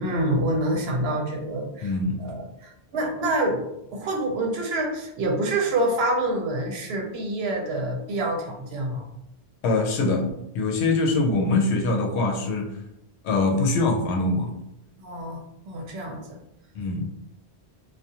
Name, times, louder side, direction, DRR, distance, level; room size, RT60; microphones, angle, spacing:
voice 1, 0.0-1.9 2.2-3.6 3.9-9.0 15.0-16.4, right 1 dB, 75° right, 1 dB, 0.8 m, -27 dB
voice 2, 1.8-2.2 9.6-10.3 10.5-12.8 13.2-14.5 16.7-17.1, left 3 dB, 85° left, 2 dB, 0.8 m, -23 dB
2.4 x 2.2 x 2.7 m, 0.82 s
omnidirectional pair, 1.1 m